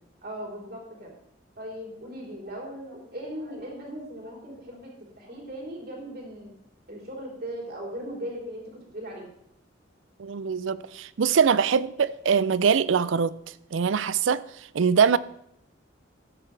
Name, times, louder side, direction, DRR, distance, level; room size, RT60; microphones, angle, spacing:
voice 1, 0.2-1.1 1.6-4.9 5.2-6.5 6.9-9.3, equal, 50° right, 3.8 m, -38 dB
voice 2, 10.2-15.2, right 6 dB, 80° right, 0.5 m, -23 dB
14.0 x 9.8 x 3.3 m
head